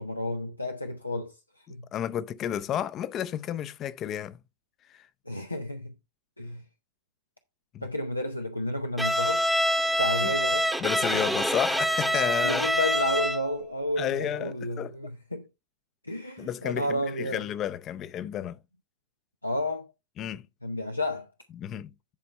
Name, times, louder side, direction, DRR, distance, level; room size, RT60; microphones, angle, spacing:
voice 1, 0.0-1.4 1.7-1.9 5.3-5.9 6.4-6.6 7.8-9.5 10.0-10.7 11.1-11.3 12.2-15.5 16.0-17.4 19.4-19.9 20.6-21.3, left 1 dB, 85° left, 0.7 m, -31 dB
voice 2, 1.9-4.4 4.9-5.1 7.7-7.9 10.2-10.3 10.8-12.7 14.0-14.9 16.4-18.6 20.2-20.5 21.5-21.9, left 10 dB, 30° left, 0.6 m, -32 dB
Bowed string instrument, 9.0-13.5, equal, ahead, 1.0 m, -26 dB
10.5 x 4.4 x 4.1 m
figure-of-eight pair, 90°, 0 cm